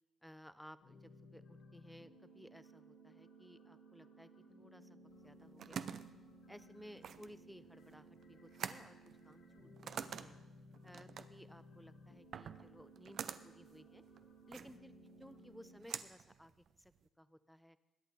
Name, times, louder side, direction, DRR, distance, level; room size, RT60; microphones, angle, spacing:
voice 1, 0.2-6.0 6.5-9.0 9.2-10.4 10.8-14.0 14.5-17.8, equal, ahead, 14 dB, 0.6 m, -58 dB
sound 1, 0.8-15.7, right 1 dB, 85° left, 4.0 m, -59 dB
sound 2, 5.2-17.1, right 7 dB, 60° right, 0.6 m, -48 dB
21.5 x 8.9 x 4.1 m, 1.0 s
cardioid pair, 90°, 0 cm